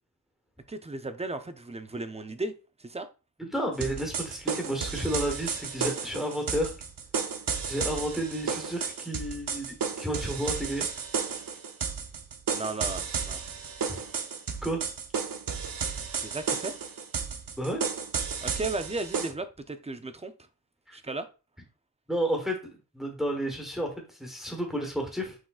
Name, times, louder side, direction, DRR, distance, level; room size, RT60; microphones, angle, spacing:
voice 1, 0.7-2.5 2.8-3.1 12.5-13.4 16.2-16.8 18.4-20.3 20.9-21.3, right 2 dB, 15° right, 0.4 m, -35 dB
voice 2, 3.4-6.7 7.6-10.9 14.6-14.8 17.6-17.8 20.9-21.0 22.1-22.6 22.9-25.4, right 1 dB, ahead, 1.1 m, -31 dB
sound 1, 3.8-19.3, right 6 dB, 60° right, 0.6 m, -33 dB
6.1 x 3.6 x 2.4 m
wide cardioid pair, 135°, 38 cm